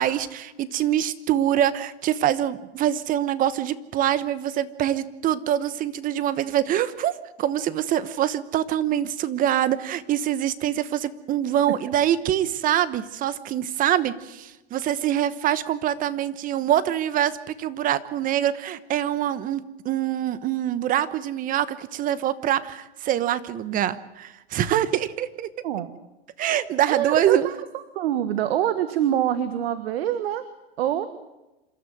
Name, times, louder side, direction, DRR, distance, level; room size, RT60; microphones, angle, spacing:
voice 1, 0.0-7.1 7.4-25.5 26.4-27.5, right 11 dB, 25° right, 17 dB, 1.1 m, -24 dB
voice 2, 26.9-30.4 30.8-31.1, right 11 dB, 70° right, 12 dB, 1.6 m, -25 dB
27.0 x 13.0 x 9.2 m, 1.0 s
supercardioid pair, 145°, 32 cm